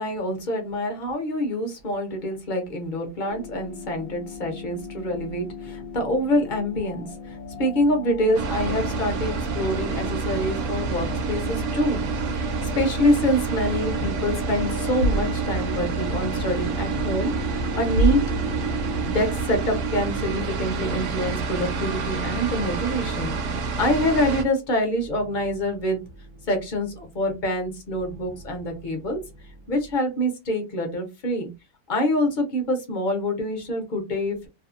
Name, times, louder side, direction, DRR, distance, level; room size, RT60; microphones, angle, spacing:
voice 1, 0.0-18.2 19.1-23.4 23.8-26.0 26.5-29.2 29.7-31.5 31.9-34.5, left 1 dB, 45° left, 3 dB, 0.7 m, -26 dB
sound 1, 3.3-19.1, left 5 dB, 70° left, 1.0 m, -39 dB
sound 2, 8.3-24.4, right 4 dB, 65° right, 0.9 m, -28 dB
sound 3, 22.0-30.0, equal, 85° right, 1.2 m, -34 dB
2.7 x 2.3 x 2.5 m, 0.24 s
omnidirectional pair, 1.6 m